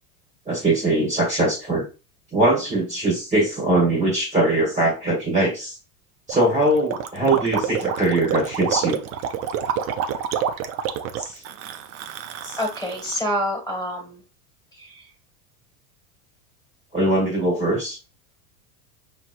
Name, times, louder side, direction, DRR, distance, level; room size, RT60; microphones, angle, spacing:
voice 1, 0.5-1.8 2.3-5.8 6.3-9.0 11.2-11.4 12.4-12.6 16.9-18.0, right 2 dB, 15° right, -3 dB, 1.4 m, -21 dB
Gurgling, 6.3-13.2, right 8 dB, 35° right, 0.4 m, -28 dB
voice 2, 12.6-14.2 14.7-15.0, equal, 10° left, -1 dB, 1.8 m, -27 dB
5.5 x 3.0 x 2.5 m, 0.32 s
supercardioid pair, 120°, 48 cm